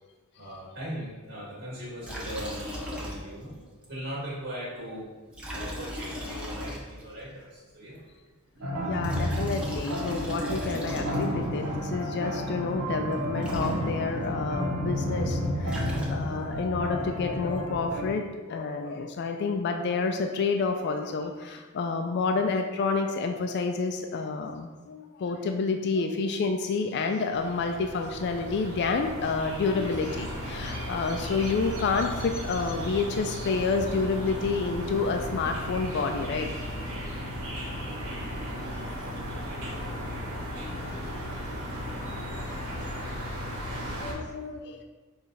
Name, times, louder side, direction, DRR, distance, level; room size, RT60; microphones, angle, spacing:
voice 1, 0.3-5.1 5.5-8.1 8.5-8.7, equal, 55° right, -8 dB, 1.5 m, -39 dB
Liquid, 2.0-3.5 3.8-3.9 5.3-7.2 8.8-11.5 13.1-13.2 13.4-14.2 15.4-16.5, left 1 dB, 5° right, 0.7 m, -37 dB
sound 1, 8.6-18.1, equal, 90° right, 0.9 m, -31 dB
voice 2, 8.8-36.5 40.6-41.2 42.1-42.6 43.0-43.2 44.0-44.8, left 4 dB, 50° left, 4 dB, 0.3 m, -29 dB
sound 2, 27.3-44.1, equal, 75° right, 1.3 m, -35 dB
5.6 x 2.4 x 3.9 m, 1.3 s
head